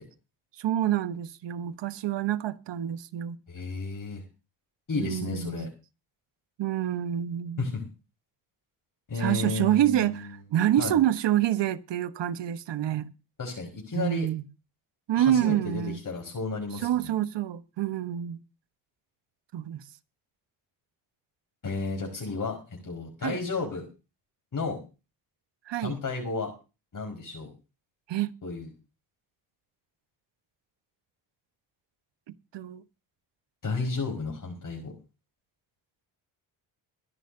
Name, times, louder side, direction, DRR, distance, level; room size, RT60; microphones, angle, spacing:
voice 1, 0.6-3.4 4.9-5.7 6.6-7.7 9.2-13.1 13.9-14.4 15.1-16.0 16.8-18.4 19.5-19.8 23.2-23.4 25.7-25.9 28.1-28.3 32.5-32.8, right 11 dB, 65° right, 1.2 m, -27 dB
voice 2, 3.5-4.2 4.9-5.7 7.6-7.9 9.1-10.4 10.8-11.0 13.4-14.3 15.1-16.9 21.6-23.9 24.5-24.8 25.8-26.5 26.9-27.5 28.4-28.7 33.6-34.9, left 4 dB, 40° left, 5.1 m, -32 dB
22.5 x 11.0 x 2.7 m
supercardioid pair, 65°, 46 cm